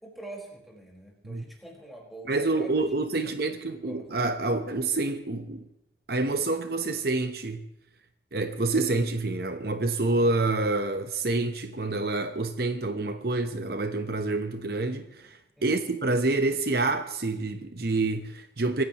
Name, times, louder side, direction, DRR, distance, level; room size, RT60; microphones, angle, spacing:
voice 1, 0.0-2.8 3.2-3.4 3.8-4.1 15.6-15.9, right 1 dB, ahead, 4.8 m, -45 dB
voice 2, 2.3-5.7 6.1-7.7 8.3-18.8, right 2 dB, 60° right, 1.0 m, -27 dB
25.5 x 15.5 x 3.1 m
head